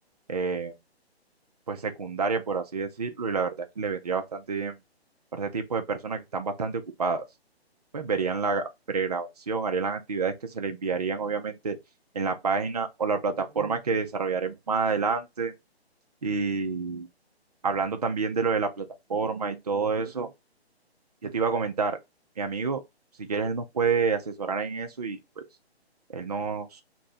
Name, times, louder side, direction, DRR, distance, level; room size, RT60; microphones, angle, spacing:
voice 1, 0.3-0.7 1.7-4.8 5.3-7.2 7.9-11.8 12.1-15.5 16.2-17.1 17.6-20.3 21.2-22.0 22.4-22.8 23.2-25.5 26.1-26.8, right 5 dB, 40° right, 0.4 m, -28 dB
2.6 x 2.6 x 3.1 m
hypercardioid pair, 170°, 33 cm